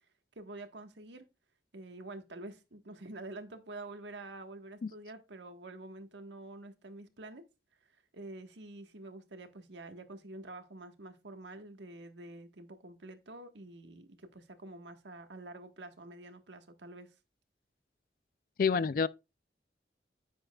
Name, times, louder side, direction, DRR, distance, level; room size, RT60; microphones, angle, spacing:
voice 1, 0.3-1.3 1.7-7.4 7.8-17.1, right 2 dB, 85° right, 1.4 m, -47 dB
voice 2, 18.6-19.1, left 5 dB, 50° left, 0.3 m, -27 dB
9.9 x 8.8 x 2.3 m
head